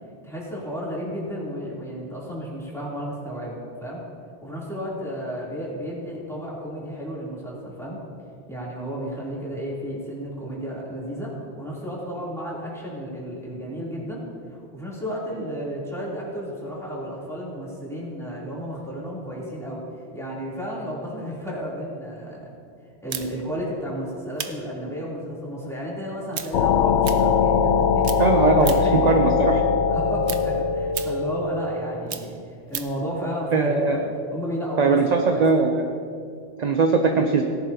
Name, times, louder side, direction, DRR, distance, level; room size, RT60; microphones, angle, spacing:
voice 1, 0.2-4.0 4.4-8.0 8.5-14.2 14.7-19.8 20.1-22.5 23.0-29.0 29.9-32.4 32.7-34.0 34.3-35.6, equal, ahead, -7 dB, 3.0 m, -32 dB
sound 1, 23.1-27.8 28.0-29.0 29.4-33.0, right 8 dB, 80° right, 1.0 m, -36 dB
sound 2, 26.5-32.0, left 6 dB, 90° left, 0.9 m, -21 dB
voice 2, 28.2-29.6 33.5-34.0 34.8-35.8 36.6-37.4, right 4 dB, 45° right, 4 dB, 0.7 m, -20 dB
17.5 x 11.0 x 2.8 m, 2.4 s
omnidirectional pair, 1.1 m